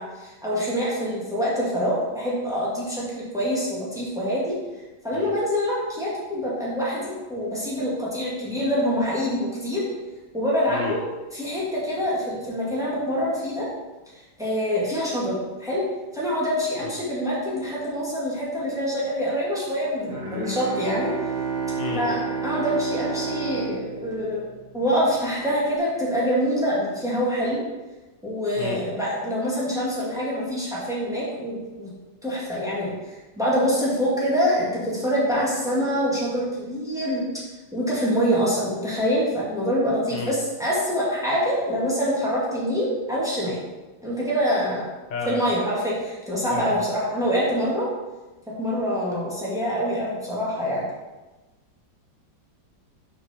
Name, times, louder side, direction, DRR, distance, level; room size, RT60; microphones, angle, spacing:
voice 1, 0.0-4.6 5.0-9.9 10.3-11.0 11.3-13.7 14.4-15.8 16.1-21.1 21.9-24.4 24.7-27.6 28.2-31.9 32.2-37.2 37.7-43.6 44.0-44.9 45.3-47.9 48.6-50.8, equal, ahead, -6 dB, 2.1 m, -25 dB
voice 2, 10.7-11.0 16.8-16.9 21.8-22.1 28.6-28.8 40.1-40.4 45.1-45.4 46.5-46.8, left 4 dB, 75° left, 1 dB, 1.6 m, -31 dB
Bowed string instrument, 20.1-25.0, right 5 dB, 30° right, 1.4 m, -30 dB
6.5 x 4.8 x 5.8 m, 1.2 s
omnidirectional pair, 2.0 m